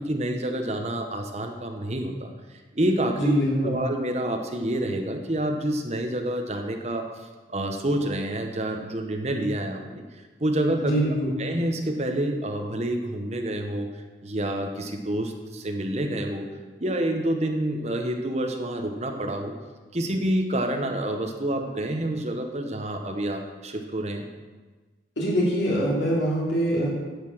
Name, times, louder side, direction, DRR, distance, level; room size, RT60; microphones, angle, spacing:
voice 1, 0.0-2.3 2.7-3.3 3.6-10.0 10.4-10.9 11.4-13.9 14.2-16.5 16.8-19.5 19.9-24.3, right 1 dB, 35° right, 4 dB, 1.1 m, -28 dB
voice 2, 3.1-3.9 10.8-11.4 25.2-26.9, equal, 80° left, -5 dB, 2.9 m, -24 dB
11.0 x 6.8 x 6.2 m, 1.3 s
head